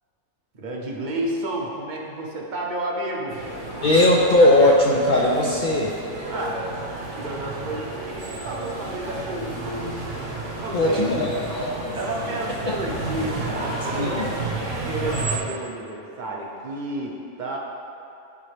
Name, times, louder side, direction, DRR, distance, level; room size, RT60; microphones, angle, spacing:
voice 1, 0.5-3.4 6.3-6.6 7.1-10.0 10.6-11.3 11.7-14.5 14.9-17.6, right 1 dB, 45° right, -1 dB, 0.9 m, -31 dB
sound 1, 3.3-15.4, right 2 dB, 75° right, 1.8 m, -31 dB
voice 2, 3.8-5.9 10.7-11.7 12.7-12.8 13.9-14.3, left 1 dB, 50° left, -3 dB, 0.6 m, -19 dB
11.0 x 4.2 x 3.3 m, 2.6 s
omnidirectional pair, 1.3 m